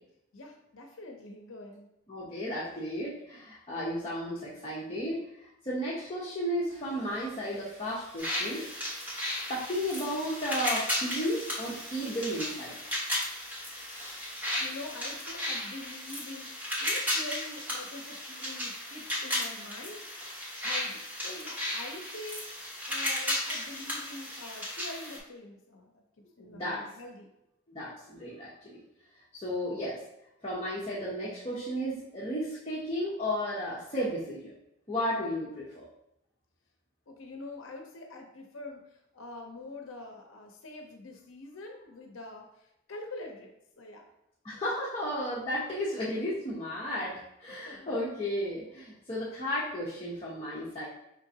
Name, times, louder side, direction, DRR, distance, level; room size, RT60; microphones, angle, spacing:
voice 1, 0.3-1.9 14.6-26.0 26.4-27.3 37.1-43.5 43.8-44.0 47.6-47.9, left 2 dB, 75° left, 3 dB, 0.6 m, -45 dB
voice 2, 2.1-8.7 9.5-12.8 26.4-26.9 27.7-28.8 29.3-30.0 30.4-34.5 34.9-35.8 44.4-50.9, equal, 30° left, -7 dB, 0.8 m, -34 dB
Sawing, 6.7-16.1, right 1 dB, 30° right, 1.3 m, -52 dB
sound 1, 8.2-25.2, left 1 dB, 10° right, 1.1 m, -35 dB
5.2 x 3.7 x 2.8 m, 0.83 s
head